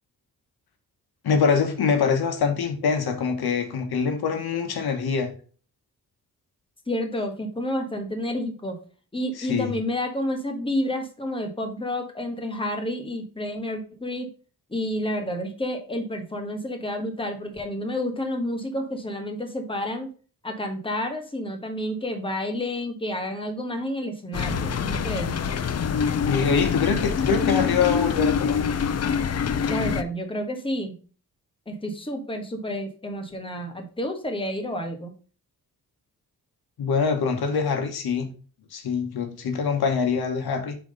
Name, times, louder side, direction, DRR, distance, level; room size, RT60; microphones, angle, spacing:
voice 1, 1.2-5.3 9.4-9.7 26.3-28.8 36.8-38.3 38.7-40.7, left 5 dB, 90° left, 1.2 m, -24 dB
voice 2, 6.9-8.8 9.1-14.3 14.7-20.1 20.4-25.3 29.7-30.9 31.7-35.1, left 1 dB, 15° left, 1.4 m, -30 dB
sound 1, 24.3-30.0, left 6 dB, 45° left, 0.6 m, -25 dB
5.8 x 3.8 x 5.3 m
wide cardioid pair, 105°, 36 cm